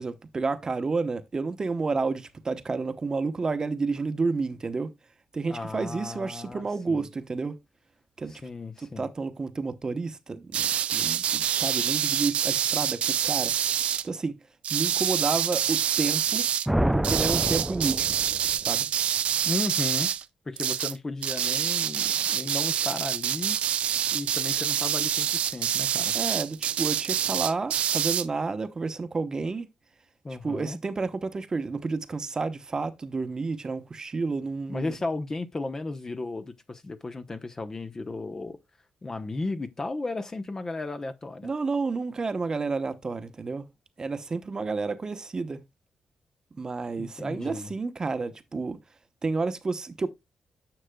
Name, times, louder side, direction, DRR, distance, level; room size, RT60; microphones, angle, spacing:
voice 1, 0.0-4.9 5.3-7.6 8.2-8.4 8.8-13.8 14.0-14.4 14.7-16.5 16.9-18.1 18.6-18.9 26.1-29.7 30.4-34.9 41.4-43.7 44.0-45.6 46.5-48.8 49.2-50.1, right 4 dB, 35° right, 0.9 m, -30 dB
voice 2, 5.5-7.0 8.3-9.1 19.4-20.1 20.4-23.6 24.1-26.1 30.2-30.8 34.7-38.6 39.0-41.5 47.0-47.7, left 2 dB, 30° left, 0.8 m, -34 dB
sound 1, 10.5-14.0 14.6-16.7 17.0-20.2 20.6-21.0 21.2-28.3, right 9 dB, 80° right, 0.5 m, -26 dB
sound 2, 16.7-18.6, right 1 dB, 5° right, 0.3 m, -27 dB
10.0 x 6.5 x 2.2 m
cardioid pair, 90°, 2 cm